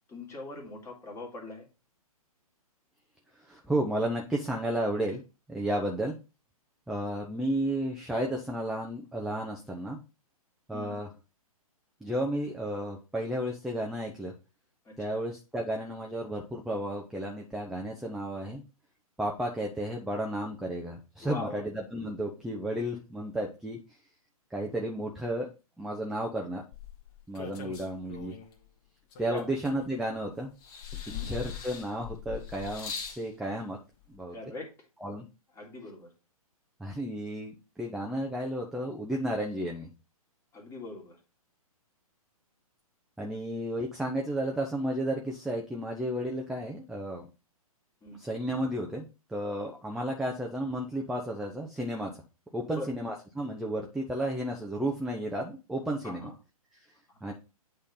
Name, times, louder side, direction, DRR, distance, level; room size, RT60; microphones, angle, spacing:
voice 1, 0.1-1.7 10.7-10.9 14.8-15.2 21.2-21.6 29.3-29.4 31.1-31.3 34.3-34.7 35.6-36.1 40.5-41.2 48.0-48.2 52.7-52.9 56.0-56.3 57.1-57.3, left 2 dB, 15° left, -1 dB, 2.1 m, -41 dB
voice 2, 3.5-5.2 5.5-6.2 6.9-10.0 10.7-11.1 12.0-14.3 15.0-18.6 19.2-23.8 24.5-25.5 25.8-26.6 27.3-28.3 29.2-30.5 31.2-33.8 34.1-34.4 35.0-35.3 36.8-39.9 43.2-47.2 48.1-52.1 52.5-56.3 57.2-57.3, right 1 dB, ahead, 0 dB, 0.7 m, -33 dB
sound 1, 26.7-28.5 29.1-30.2 30.6-33.2 34.1-34.2, left 7 dB, 35° left, 1.4 m, -41 dB
8.3 x 3.3 x 5.4 m, 0.30 s
figure-of-eight pair, 125°, 19 cm